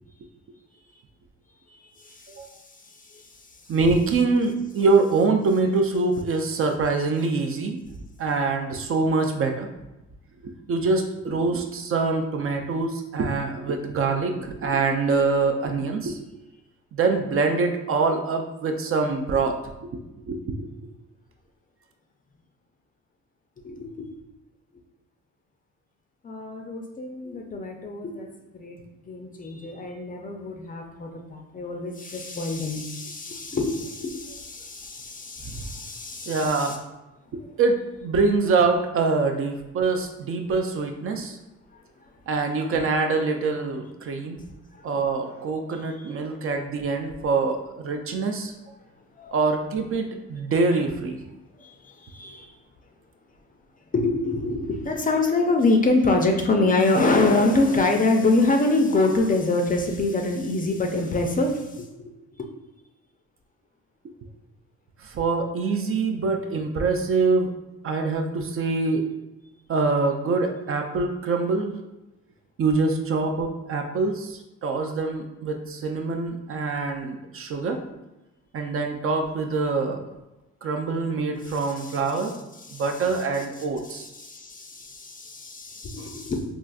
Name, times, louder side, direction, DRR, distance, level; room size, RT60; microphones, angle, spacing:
voice 1, 3.7-7.8 8.2-9.7 10.4-16.2 16.9-20.0 20.3-20.7 35.4-35.6 36.3-36.8 37.6-41.4 42.3-44.4 44.8-48.5 49.3-51.2 65.0-67.5 67.8-69.0 69.7-71.8 72.6-77.8 78.5-80.1 80.6-82.4 82.7-84.1 86.0-86.1, right 4 dB, 45° right, 4 dB, 0.4 m, -24 dB
voice 2, 23.6-24.1 26.2-28.3 28.5-28.8 29.1-36.8 44.8-44.9 49.2-49.4 51.6-52.5 53.9-62.1 81.5-82.0 82.7-82.8 83.9-86.4, left 2 dB, 30° left, 3 dB, 0.4 m, -25 dB
3.9 x 2.4 x 2.3 m, 0.98 s
cardioid pair, 90°, 30 cm